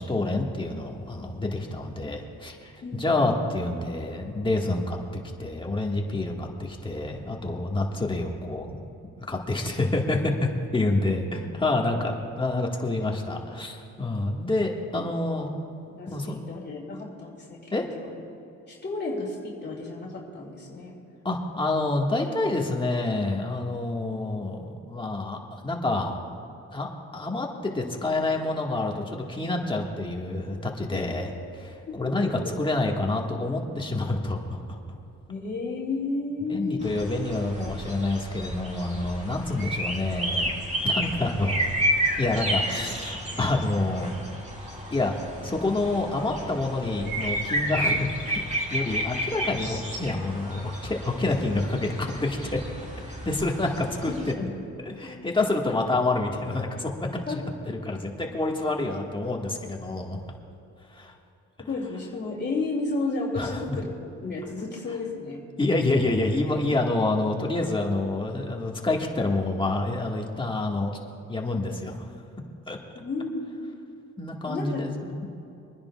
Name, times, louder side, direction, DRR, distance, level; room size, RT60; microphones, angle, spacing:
voice 1, 0.0-8.8 9.2-15.5 16.1-16.4 17.7-17.8 21.3-26.2 26.7-34.8 36.5-40.5 40.8-41.6 42.2-44.2 44.9-45.1 45.4-48.4 48.7-52.6 53.2-54.3 54.8-60.2 60.9-61.1 63.4-63.8 65.6-70.9 71.3-72.1 72.7-72.8 74.2-75.2, left 2 dB, 15° left, 0 dB, 1.7 m, -28 dB
voice 2, 15.9-17.7 18.0-18.2 18.7-21.0 31.9-32.3 35.3-37.4 54.1-54.5 57.3-57.4 61.7-63.9 64.2-65.4 72.9-73.5 74.4-74.8, left 3 dB, 35° left, -2 dB, 2.5 m, -32 dB
sound 1, 36.8-54.3, right 1 dB, 25° right, 2.2 m, -31 dB
26.5 x 10.0 x 2.4 m, 2.7 s
cardioid pair, 90°, 30 cm